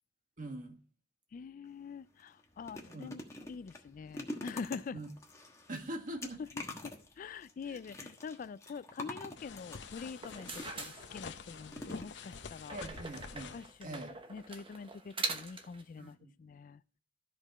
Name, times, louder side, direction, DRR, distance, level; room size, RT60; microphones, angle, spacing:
voice 1, 0.4-0.8 2.9-3.1 4.9-5.1 5.7-6.4 7.6-7.8 12.7-14.1 16.0-16.3, right 1 dB, 45° right, 1.6 m, -43 dB
voice 2, 1.3-5.0 6.4-12.8 13.5-14.0 14.3-16.8, left 5 dB, 45° left, 0.3 m, -45 dB
sound 1, 1.7-1.8 2.2-11.0 11.7-12.5 12.8-13.0 13.2-13.3, left 1 dB, 15° left, 1.3 m, -47 dB
sound 2, 9.4-13.7, left 4 dB, 70° left, 0.8 m, -47 dB
sound 3, 10.1-11.7 12.7-15.8, right 3 dB, 30° right, 1.0 m, -42 dB
13.0 x 5.1 x 4.1 m
head